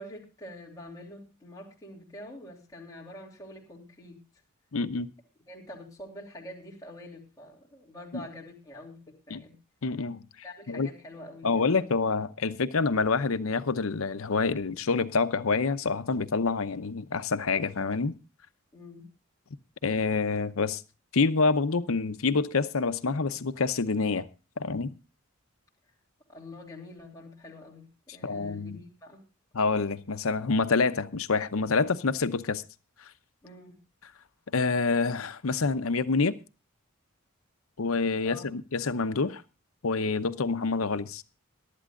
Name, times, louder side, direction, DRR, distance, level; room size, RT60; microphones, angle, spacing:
voice 1, 0.0-4.2 5.5-9.5 10.4-11.9 18.7-19.0 26.3-27.9 28.1-29.2 33.4-33.8 38.2-38.6, left 1 dB, 15° left, 3.0 m, -46 dB
voice 2, 4.7-5.1 9.3-9.4 9.8-10.2 10.7-10.9 11.4-18.2 19.8-20.8 21.1-24.3 24.6-25.0 28.2-28.8 29.5-32.6 34.5-36.4 37.8-39.4 39.8-41.2, left 4 dB, 80° left, 0.7 m, -27 dB
22.0 x 12.0 x 2.5 m
head